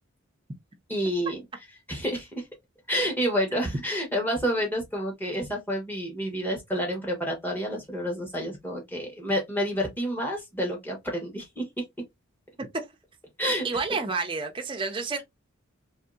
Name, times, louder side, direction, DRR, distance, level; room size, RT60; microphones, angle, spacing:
voice 1, 0.9-1.4 1.9-2.4 2.9-11.7 13.4-13.7, equal, 10° left, 1.1 m, -29 dB
voice 2, 13.6-15.2, right 4 dB, 25° right, 0.5 m, -30 dB
3.0 x 2.7 x 2.3 m
head